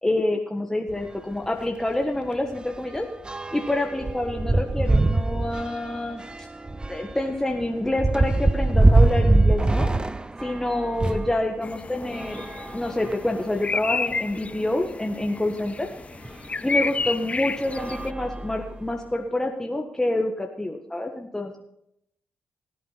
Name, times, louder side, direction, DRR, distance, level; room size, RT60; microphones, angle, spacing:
voice 1, 0.0-3.1 3.5-6.2 6.9-9.9 10.4-12.4 12.7-15.9 16.6-21.6, left 1 dB, 10° left, 2 dB, 1.5 m, -27 dB
sound 1, 0.9-1.1 1.4-1.5 1.9-11.4 12.1-13.4 14.1-14.2 14.5-14.6 16.2-16.4 17.0-17.2 17.7-18.9, right 2 dB, 20° right, 0.7 m, -24 dB
sound 2, 11.6-18.1, left 4 dB, 30° left, 0.3 m, -31 dB
18.0 x 8.5 x 4.1 m, 0.77 s
supercardioid pair, 50°, 4 cm